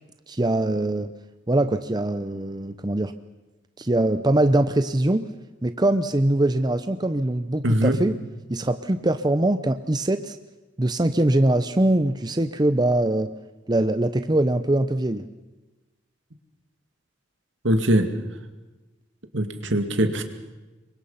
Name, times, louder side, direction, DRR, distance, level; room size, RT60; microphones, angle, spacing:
voice 1, 0.3-1.1 1.5-3.1 3.8-5.3 5.6-8.2 8.5-10.4 10.8-13.3 13.7-15.3, right 1 dB, 20° right, 10 dB, 0.7 m, -22 dB
voice 2, 7.6-8.0 17.6-18.1 19.3-20.2, right 1 dB, 70° right, 7 dB, 2.4 m, -21 dB
27.5 x 23.5 x 5.7 m, 1.1 s
head